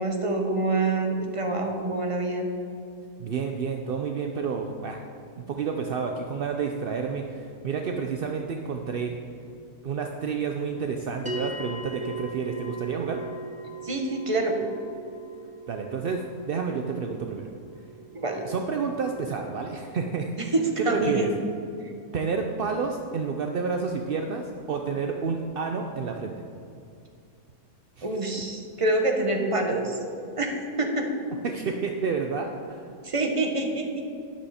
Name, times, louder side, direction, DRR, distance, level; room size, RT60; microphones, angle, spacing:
voice 1, 0.0-2.5 13.8-14.6 18.1-18.4 20.4-20.5 20.8-21.3 28.0-30.0 30.4-31.0 33.0-34.0, right 2 dB, 25° right, 2 dB, 1.1 m, -26 dB
voice 2, 3.2-5.0 5.5-9.2 9.8-13.2 15.7-16.2 16.5-17.5 18.4-21.3 22.1-26.4 28.0-28.1 31.4-32.8, right 5 dB, 55° right, 3 dB, 0.6 m, -30 dB
sound 1, 11.3-21.8, right 2 dB, 10° right, 0.6 m, -41 dB
12.0 x 10.0 x 4.3 m, 2.5 s
omnidirectional pair, 1.6 m